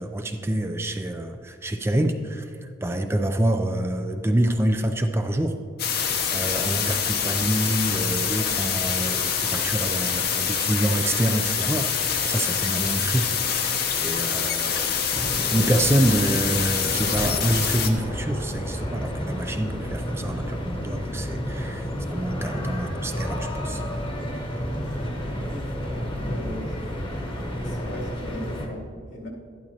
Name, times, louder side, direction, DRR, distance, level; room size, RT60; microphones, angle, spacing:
voice 1, 0.0-5.6 6.3-13.3 13.6-14.9 15.5-23.8 27.9-28.0, right 1 dB, 15° right, 6 dB, 0.4 m, -26 dB
sound 1, 5.8-17.9, left 7 dB, 50° left, 0.8 m, -25 dB
sound 2, 15.1-28.7, equal, 25° left, 1.0 m, -31 dB
voice 2, 26.3-27.0 27.6-29.3, left 1 dB, 85° left, -3 dB, 2.4 m, -38 dB
12.0 x 11.5 x 2.8 m, 2.2 s
head